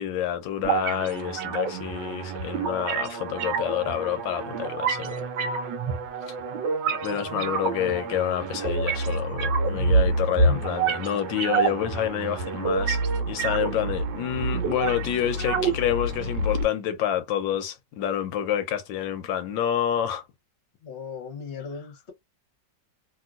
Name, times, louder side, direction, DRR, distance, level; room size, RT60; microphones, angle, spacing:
voice 1, 0.0-5.1 6.3-6.4 7.0-13.0 13.3-20.2, left 10 dB, 90° left, 1.4 m, -28 dB
sound 1, 0.6-16.6, right 4 dB, 75° right, 1.3 m, -27 dB
voice 2, 6.9-7.3 10.4-11.0 20.8-22.1, left 6 dB, 45° left, 1.2 m, -38 dB
2.9 x 2.9 x 2.4 m
omnidirectional pair, 2.0 m